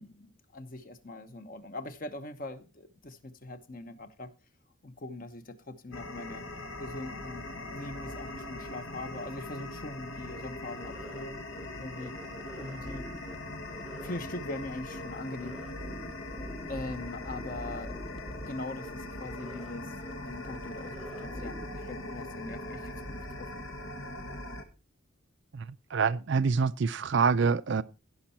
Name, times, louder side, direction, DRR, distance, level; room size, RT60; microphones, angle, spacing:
voice 1, 0.0-4.3 4.8-6.5 6.8-7.4 7.7-11.4 11.7-12.1 12.6-13.1 14.0-15.6 16.7-17.9 18.4-23.6, left 2 dB, 40° left, 1.0 m, -42 dB
sound 1, 5.9-24.6, left 2 dB, 75° left, 1.6 m, -41 dB
sound 2, 10.3-10.4 10.7-11.2 11.5-11.7 11.9-13.4 13.7-14.2 14.4-14.6 14.9-18.5 18.7-18.9 19.2-19.7 20.0-20.1 20.4-21.7, right 1 dB, ahead, 0.6 m, -45 dB
voice 2, 25.9-27.8, right 5 dB, 60° right, 0.4 m, -26 dB
16.5 x 5.6 x 4.3 m
head